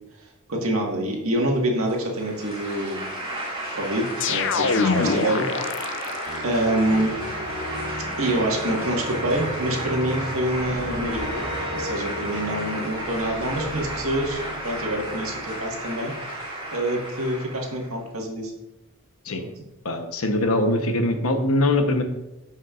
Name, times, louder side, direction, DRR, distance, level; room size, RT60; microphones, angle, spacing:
voice 1, 0.5-3.1 3.7-5.5 5.8-5.9 6.4-7.1 8.2-11.3 11.7-16.1 16.7-18.5 19.4-19.5, right 1 dB, 75° right, 0 dB, 1.7 m, -26 dB
sound 1, 1.9-17.9, right 1 dB, 25° right, 2.8 m, -33 dB
sound 2, 4.2-6.4, left 5 dB, 60° left, 0.5 m, -24 dB
sound 3, 6.3-16.3, equal, 60° right, 2.6 m, -35 dB
voice 2, 19.8-22.0, left 1 dB, 85° left, 6 dB, 1.0 m, -22 dB
14.5 x 5.4 x 2.5 m, 0.94 s
head